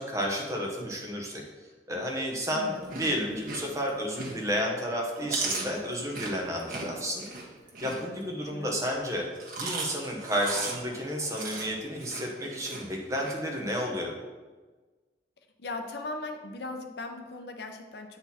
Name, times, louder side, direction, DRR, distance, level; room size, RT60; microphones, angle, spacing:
voice 1, 0.0-1.4 1.9-7.2 7.8-9.2 9.6-14.1, equal, 15° right, -1 dB, 1.1 m, -31 dB
voice 2, 2.5-3.5 8.5-8.7 15.6-18.2, left 2 dB, 60° left, 5 dB, 0.6 m, -39 dB
Chewing mastication, 2.7-4.6 5.0-8.5 9.2-13.3, right 3 dB, 50° right, 1.4 m, -37 dB
7.9 x 4.2 x 4.2 m, 1.3 s
head